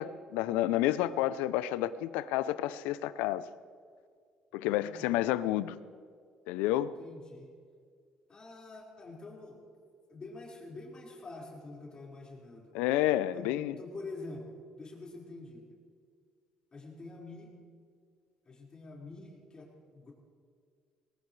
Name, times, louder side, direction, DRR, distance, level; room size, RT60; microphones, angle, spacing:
voice 1, 0.0-3.4 4.5-5.8 6.5-6.9 12.7-13.8, left 14 dB, 90° left, 0.5 m, -30 dB
voice 2, 4.8-5.3 7.0-7.5 8.3-9.6 10.1-12.9 13.3-15.6 16.7-17.5 18.4-20.1, left 2 dB, 35° left, 4.9 m, -46 dB
20.5 x 19.0 x 3.3 m
supercardioid pair, 75°, 3 cm